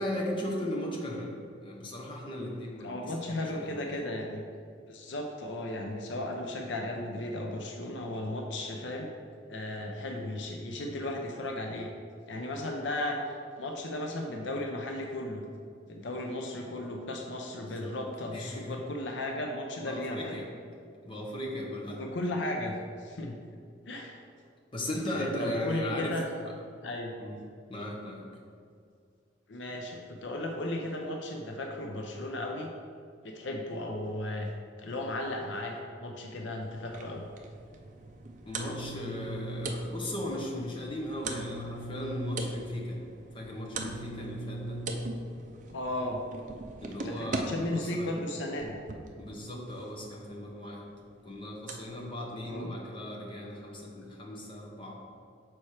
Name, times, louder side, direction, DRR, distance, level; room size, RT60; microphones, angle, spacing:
voice 1, 0.0-3.9 17.8-17.9 18.3-18.8 19.8-20.5 21.0-22.0 24.7-26.2 27.2-27.4 27.7-28.2 38.5-43.0 43.3-44.8 46.8-48.2 49.2-50.9 51.2-55.0, left 1 dB, 25° left, -2 dB, 0.9 m, -37 dB
voice 2, 2.8-4.4 4.9-9.1 9.5-11.9 12.3-13.2 13.6-15.4 15.9-20.4 21.9-23.4 23.8-24.2 25.1-26.3 26.8-27.1 29.5-32.7 33.2-34.5 34.8-37.3 45.7-46.2 47.0-48.8 52.4-52.7, left 1 dB, 70° left, 1 dB, 0.6 m, -35 dB
sound 1, 36.6-47.4 48.2-49.1 50.3-50.4 50.8-50.9 51.7-52.4, right 2 dB, 45° right, 0.5 m, -39 dB
6.1 x 4.3 x 4.7 m, 2.2 s
head